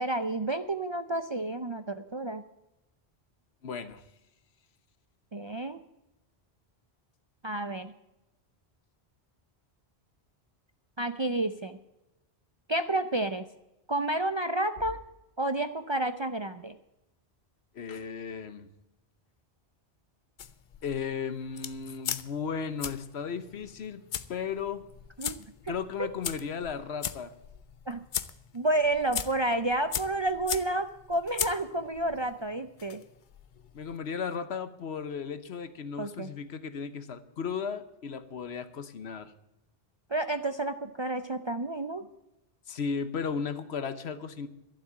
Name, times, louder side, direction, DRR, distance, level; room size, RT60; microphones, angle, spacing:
voice 1, 0.0-2.4 5.3-5.8 7.4-7.9 11.0-11.8 12.7-13.5 13.9-15.0 15.4-16.7 25.2-25.4 25.7-25.8 27.9-28.0 28.5-33.0 36.0-36.3 40.1-42.1, right 2 dB, 35° right, 9 dB, 0.4 m, -30 dB
voice 2, 3.6-4.0 17.7-18.7 20.8-24.0 24.3-24.8 25.7-27.3 33.7-39.3 42.7-44.5, left 6 dB, 80° left, 12 dB, 1.2 m, -35 dB
sound 1, 20.4-34.0, left 8 dB, 55° left, 0.7 m, -39 dB
12.0 x 7.5 x 8.6 m, 0.93 s
omnidirectional pair, 1.1 m